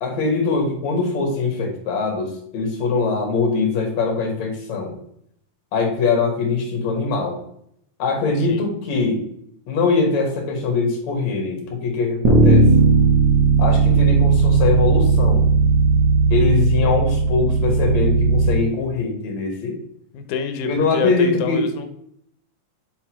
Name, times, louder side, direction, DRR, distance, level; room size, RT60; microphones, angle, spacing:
voice 1, 0.0-4.9 5.7-7.4 8.0-9.3 9.7-12.7 13.6-15.5 16.3-19.8 20.6-21.6, left 4 dB, 70° left, 2 dB, 2.7 m, -22 dB
Bass guitar, 12.2-18.5, right 4 dB, 55° right, 1.3 m, -16 dB
voice 2, 20.1-21.9, left 6 dB, 85° left, 8 dB, 2.1 m, -27 dB
7.9 x 4.3 x 3.0 m, 0.70 s
omnidirectional pair, 3.3 m